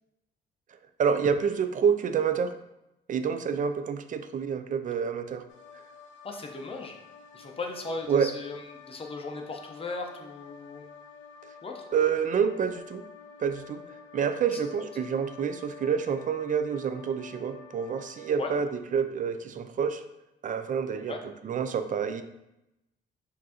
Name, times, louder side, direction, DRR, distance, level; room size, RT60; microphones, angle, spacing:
voice 1, 1.0-2.5 3.1-5.4 8.1-8.3 11.9-13.0 13.4-13.8 14.1-20.0 20.4-21.2 21.4-22.2, right 7 dB, 40° right, 10 dB, 0.4 m, -28 dB
sound 1, 5.5-18.4, left 6 dB, 75° left, 0.6 m, -49 dB
voice 2, 6.2-7.0 7.3-10.8 11.6-11.8 18.4-18.5 21.1-21.2, left 3 dB, 30° left, 3 dB, 0.7 m, -37 dB
5.2 x 2.6 x 2.8 m, 0.91 s
cardioid pair, 90°, 20 cm